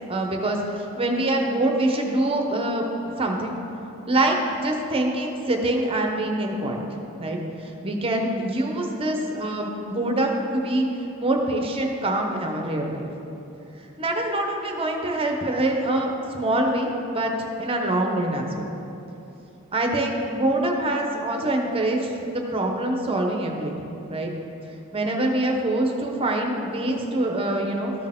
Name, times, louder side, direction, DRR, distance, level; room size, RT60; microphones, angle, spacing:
voice 1, 0.1-2.8 3.2-3.5 4.1-4.4 4.6-6.8 7.2-10.9 11.2-13.1 14.0-17.3 17.6-18.7 19.7-24.3 24.9-27.9, right 1 dB, 25° right, 2 dB, 0.8 m, -25 dB
13.5 x 4.5 x 3.6 m, 2.9 s
head